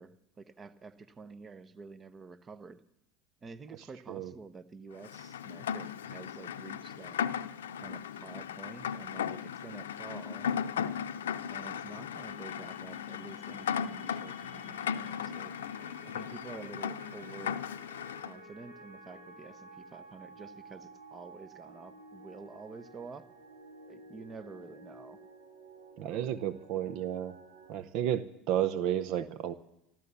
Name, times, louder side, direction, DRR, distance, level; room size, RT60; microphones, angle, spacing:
voice 1, 0.0-2.8 3.4-7.2 7.8-10.5 11.5-15.5 16.0-17.6 18.2-23.3 23.9-25.2 26.0-26.4 26.7-27.0, right 4 dB, 25° right, 13 dB, 0.9 m, -49 dB
Rain, 5.0-18.3, left 8 dB, 80° left, 0.6 m, -37 dB
sound 1, 10.2-27.7, equal, 75° right, 4.2 m, -52 dB
voice 2, 26.0-27.4 27.7-29.5, right 10 dB, 60° right, 14 dB, 0.7 m, -32 dB
14.0 x 13.5 x 7.0 m, 0.86 s
hypercardioid pair, 80°, 0 cm